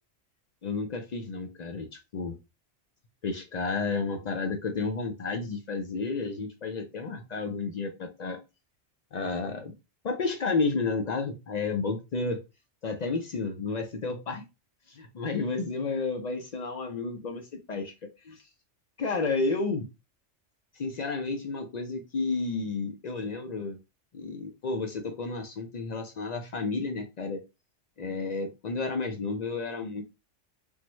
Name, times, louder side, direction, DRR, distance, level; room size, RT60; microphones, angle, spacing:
voice 1, 0.6-2.4 3.2-8.4 9.1-9.7 10.0-12.4 12.8-14.4 14.9-18.4 19.0-19.9 20.7-23.8 24.1-27.4 28.0-30.0, left 4 dB, 65° left, 5 dB, 0.4 m, -31 dB
3.5 x 2.1 x 3.0 m, 0.26 s
omnidirectional pair, 1.2 m